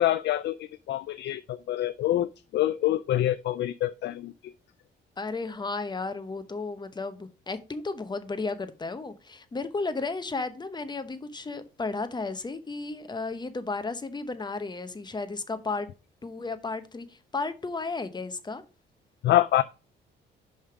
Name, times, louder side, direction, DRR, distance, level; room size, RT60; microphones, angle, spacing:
voice 1, 0.0-4.3 19.2-19.6, left 13 dB, 60° left, 0.4 m, -26 dB
voice 2, 5.2-15.9 16.2-18.6, left 3 dB, 20° left, 0.9 m, -33 dB
5.5 x 5.1 x 5.7 m
cardioid pair, 90°, 20 cm